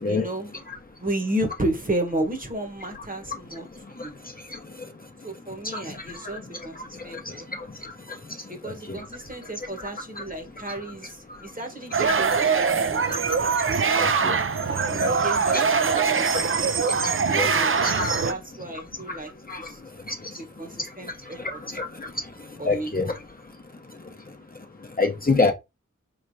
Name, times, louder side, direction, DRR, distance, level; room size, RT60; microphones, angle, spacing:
voice 1, 0.0-0.6 1.0-4.1 5.2-6.8 7.0-7.7 8.5-13.5 15.1-16.5 17.4-19.3 19.6-19.8 20.3-21.8 22.6-22.9, right 1 dB, 25° right, 1.1 m, -33 dB
sound 1, 11.9-18.3, right 5 dB, 45° right, 0.5 m, -23 dB
voice 2, 14.0-14.3 14.9-15.1 15.7-15.8 17.3-17.5 17.8-18.2 19.5-19.6 21.7-21.9 22.7-23.1 25.0-25.5, left 3 dB, 30° left, 0.8 m, -24 dB
4.2 x 3.2 x 2.7 m
wide cardioid pair, 40°, 31 cm